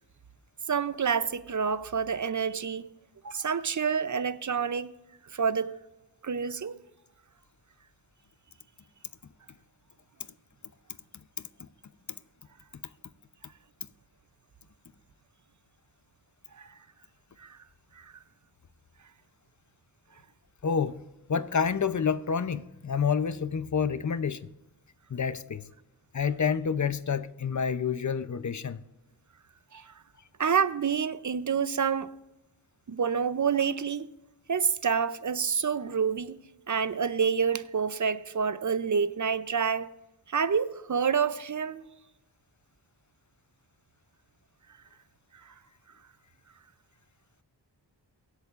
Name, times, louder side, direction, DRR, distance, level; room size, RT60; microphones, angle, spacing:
voice 1, 0.7-2.9 3.2-4.9 5.3-5.8 6.2-6.8 16.6-16.7 17.4-17.6 18.0-18.1 29.7-29.9 30.4-32.1 32.9-34.1 34.5-36.4 36.7-39.9 40.3-41.8 45.5-45.6, right 6 dB, 45° right, 0.6 m, -28 dB
voice 2, 20.6-21.0 21.3-24.5 25.1-25.6 26.1-28.8, left 6 dB, 40° left, 0.7 m, -28 dB
23.5 x 8.2 x 2.5 m
wide cardioid pair, 55°, 44 cm